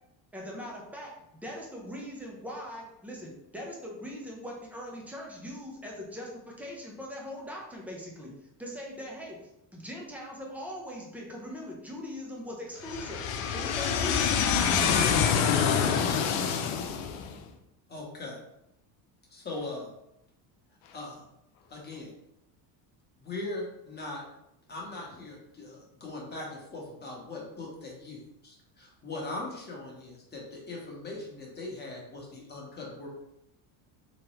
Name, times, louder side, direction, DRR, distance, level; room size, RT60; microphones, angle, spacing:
voice 1, 0.3-1.1 1.4-8.3 8.6-13.2 13.5-14.3, equal, 5° right, 0.5 m, -41 dB
voice 2, 12.9-17.1, left 7 dB, 75° left, 0.8 m, -26 dB
voice 3, 17.9-18.3 19.3-19.9 20.9-21.2 21.7-22.1 23.2-24.2 24.7-33.1, left 2 dB, 20° left, 0.9 m, -40 dB
3.4 x 3.0 x 3.0 m
cardioid pair, 145°, 49 cm